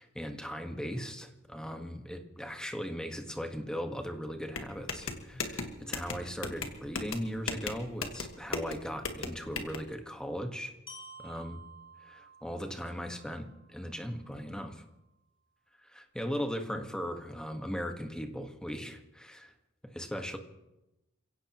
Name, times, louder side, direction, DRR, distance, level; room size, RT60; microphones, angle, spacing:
voice 1, 0.0-10.7 11.2-11.6 12.0-14.8 15.8-19.5 19.8-20.4, equal, 5° left, 4 dB, 1.4 m, -38 dB
sound 1, 4.5-9.8, left 4 dB, 65° left, 1.8 m, -37 dB
Glockenspiel, 10.9-14.8, right 2 dB, 25° left, 4.4 m, -53 dB
28.5 x 16.5 x 3.0 m, 0.95 s
head